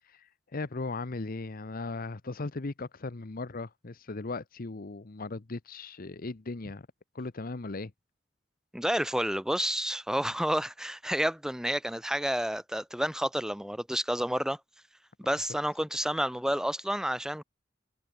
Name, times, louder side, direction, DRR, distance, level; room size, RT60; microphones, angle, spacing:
voice 1, 0.1-6.9 7.1-7.9, left 3 dB, 50° left, 0.9 m, -37 dB
voice 2, 8.7-14.6 15.2-17.4, equal, 5° right, 1.9 m, -30 dB
head